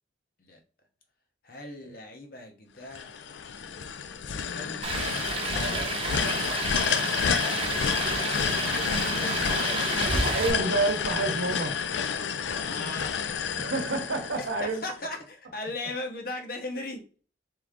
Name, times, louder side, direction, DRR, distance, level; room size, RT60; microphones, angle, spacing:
voice 1, 1.4-3.3 4.2-4.8 8.1-9.5 12.5-13.2 14.3-17.0, left 2 dB, 50° left, 0.9 m, -39 dB
sound 1, 2.9-15.0, left 7 dB, 70° left, 0.4 m, -29 dB
sound 2, 4.8-10.5, right 4 dB, 30° right, 0.4 m, -31 dB
voice 2, 5.6-5.9 10.1-11.8 13.6-14.8, right 2 dB, 80° right, 0.9 m, -29 dB
3.7 x 3.0 x 3.6 m
head